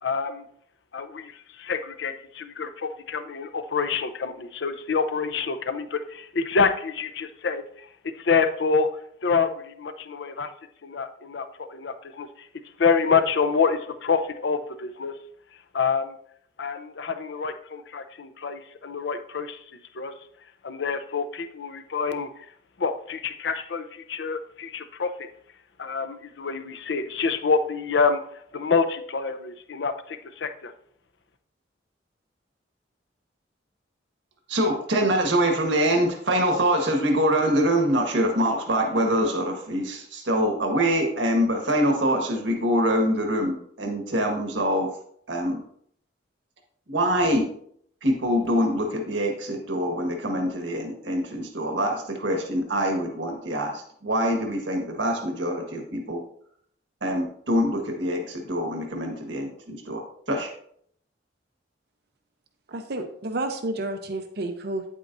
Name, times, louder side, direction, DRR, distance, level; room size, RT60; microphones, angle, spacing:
voice 1, 0.0-0.4 0.9-7.9 8.2-8.9 9.2-10.5 10.8-12.5 12.8-15.1 15.7-16.2 16.6-19.6 19.9-20.1 20.6-22.5 22.8-25.3 25.8-28.2 28.5-30.7, left 5 dB, 70° left, 9 dB, 0.6 m, -27 dB
voice 2, 34.5-44.9 45.3-45.6 46.9-47.5 48.0-56.2 57.0-60.0 60.3-60.5, equal, 85° right, 2 dB, 1.5 m, -24 dB
voice 3, 62.7-64.9, right 2 dB, 60° right, 6 dB, 0.7 m, -30 dB
9.1 x 8.2 x 2.6 m, 0.65 s
head